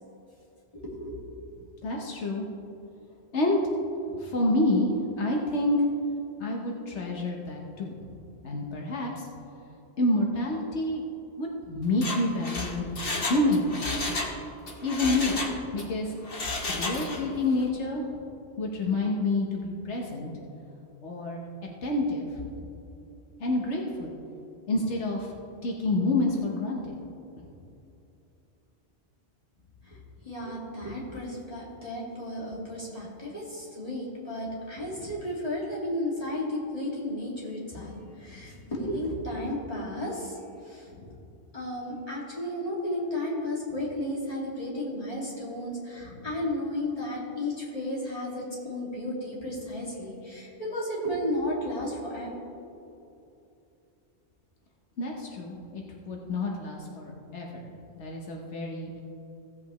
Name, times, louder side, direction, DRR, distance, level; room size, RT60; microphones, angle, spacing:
voice 1, 0.7-1.2 29.8-40.9 41.5-52.3, left 1 dB, 35° left, -6 dB, 2.4 m, -33 dB
voice 2, 1.8-2.4 3.3-3.6 4.1-5.8 6.4-8.0 8.4-9.3 10.0-11.0 11.4-14.1 14.8-15.4 15.7-16.1 16.7-18.1 18.6-20.3 21.0-21.4 21.8-22.3 23.4-24.2 24.7-25.3 25.6-27.0 38.3-38.4 40.9-41.1 55.0-59.0, left 2 dB, 85° left, 0 dB, 1.3 m, -28 dB
Mechanisms, 11.9-14.4 14.7-15.9 16.2-17.3 17.6-17.7, left 3 dB, 55° left, 1.3 m, -32 dB
16.0 x 8.0 x 3.1 m, 2.8 s
omnidirectional pair, 1.1 m